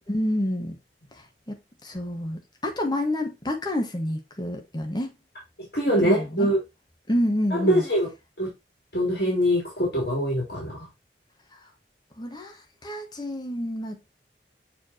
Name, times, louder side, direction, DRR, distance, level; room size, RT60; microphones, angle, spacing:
voice 1, 0.1-0.7 1.5-5.1 6.0-6.5 7.1-7.8 12.2-12.6 12.8-14.0, left 1 dB, 25° left, 1.4 m, -28 dB
voice 2, 5.7-6.6 7.5-8.1 8.4-8.5 8.9-10.7, equal, 65° left, 3.2 m, -23 dB
7.0 x 4.8 x 2.8 m
head